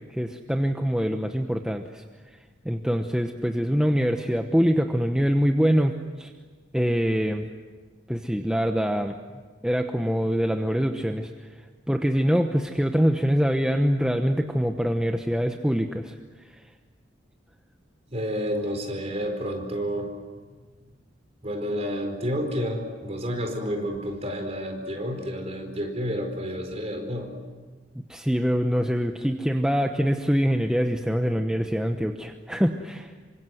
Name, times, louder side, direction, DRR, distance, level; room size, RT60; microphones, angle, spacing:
voice 1, 0.1-2.0 2.6-5.9 6.2-6.3 6.7-7.5 8.1-9.2 9.6-11.6 11.9-16.1 28.1-33.1, equal, 5° right, 4 dB, 1.0 m, -24 dB
voice 2, 18.1-20.2 21.4-27.3, equal, 35° right, 4 dB, 4.6 m, -30 dB
27.5 x 25.0 x 7.9 m, 1.4 s
head